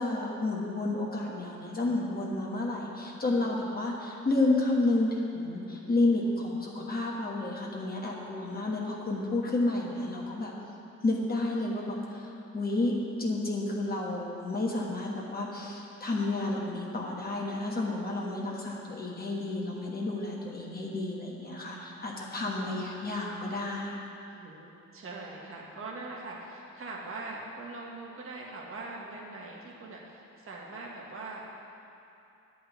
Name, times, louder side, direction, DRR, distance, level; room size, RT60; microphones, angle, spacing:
voice 1, 0.0-10.5 11.0-24.0, left 2 dB, 30° left, -3 dB, 1.4 m, -31 dB
voice 2, 3.2-3.6 22.3-22.7 24.3-31.5, right 3 dB, 45° right, -3 dB, 1.7 m, -42 dB
9.4 x 5.5 x 8.2 m, 2.8 s
cardioid pair, 90°, 30 cm